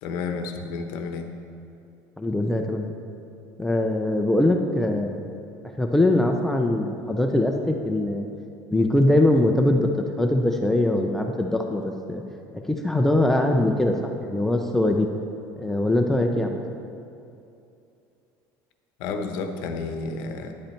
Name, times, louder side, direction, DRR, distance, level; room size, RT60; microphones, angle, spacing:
voice 1, 0.0-1.3 19.0-20.5, left 4 dB, 65° left, 6 dB, 0.9 m, -31 dB
voice 2, 2.2-2.9 3.6-5.3 5.8-8.3 8.7-9.9 10.2-11.8 12.1-12.2 12.6-15.1 15.6-16.6, left 1 dB, 5° left, 2 dB, 0.4 m, -22 dB
10.5 x 7.8 x 4.4 m, 2.7 s
cardioid pair, 170°, 7 cm